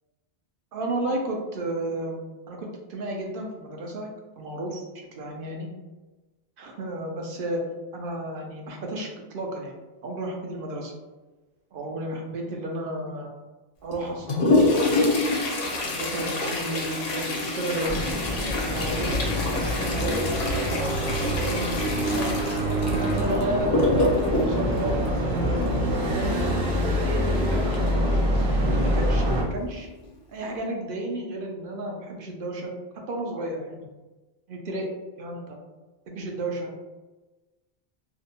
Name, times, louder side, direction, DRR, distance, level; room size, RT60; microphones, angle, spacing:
voice 1, 0.7-2.2 2.5-4.1 4.4-5.7 6.6-7.6 7.9-10.9 11.7-13.3 13.8-14.5 15.7-18.0 18.6-21.7 22.0-22.3 22.8-26.4 27.0-29.9 30.3-32.7 33.1-33.9 34.5-34.9 35.2-35.6 36.1-36.7, right 1 dB, 65° right, 0 dB, 0.7 m, -32 dB
Toilet flush, 13.9-25.9 27.7-27.8 28.2-28.3 29.1-29.2 29.8-30.1 30.5-30.6, left 2 dB, 60° left, 0.7 m, -26 dB
sound 1, 17.9-29.4, equal, 90° right, 0.9 m, -25 dB
2.6 x 2.1 x 2.7 m, 1.2 s
omnidirectional pair, 1.0 m